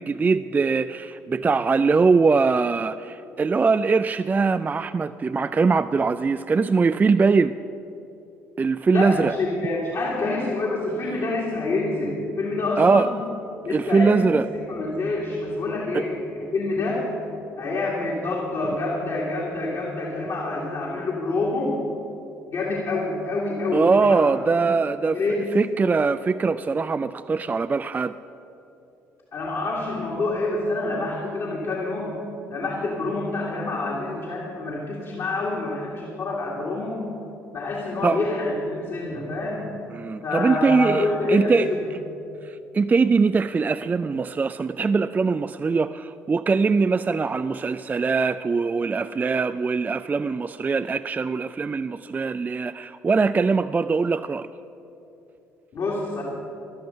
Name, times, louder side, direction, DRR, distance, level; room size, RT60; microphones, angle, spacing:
voice 1, 0.0-7.5 8.6-9.3 12.8-13.1 13.7-14.5 15.9-16.0 23.7-25.2 25.5-28.1 38.0-38.2 39.9-42.0 42.4-54.5, right 4 dB, 20° right, 12 dB, 0.3 m, -22 dB
voice 2, 8.9-13.1 13.6-16.2 16.5-17.1 17.6-21.8 22.5-24.3 25.1-25.5 29.3-32.2 32.5-37.0 37.5-39.7 40.2-41.8 55.7-56.2, left 2 dB, 50° left, -4 dB, 2.3 m, -27 dB
13.5 x 11.5 x 5.5 m, 2.9 s
figure-of-eight pair, 50°, 8 cm